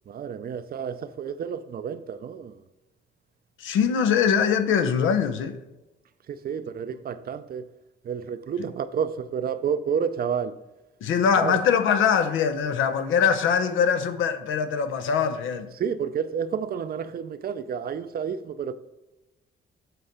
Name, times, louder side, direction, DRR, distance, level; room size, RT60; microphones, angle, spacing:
voice 1, 0.1-2.6 6.3-7.6 8.0-10.5 11.4-11.6 15.8-18.7, right 7 dB, 50° right, 0.5 m, -30 dB
voice 2, 3.6-5.6 11.0-15.7, left 7 dB, 80° left, 0.7 m, -22 dB
8.0 x 4.6 x 5.0 m
cardioid pair, 90°, 20 cm